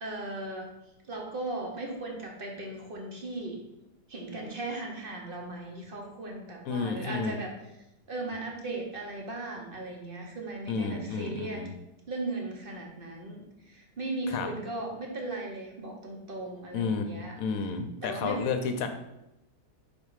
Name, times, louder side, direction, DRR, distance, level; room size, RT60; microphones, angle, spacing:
voice 1, 0.0-0.7 1.1-3.6 4.1-7.5 8.1-11.6 12.1-17.3 18.0-18.4, right 2 dB, 35° right, 0 dB, 1.2 m, -37 dB
voice 2, 6.6-7.4 10.7-11.7 14.3-14.5 16.7-18.9, left 5 dB, 65° left, 7 dB, 1.1 m, -31 dB
5.5 x 4.6 x 4.8 m, 0.90 s
omnidirectional pair, 1.8 m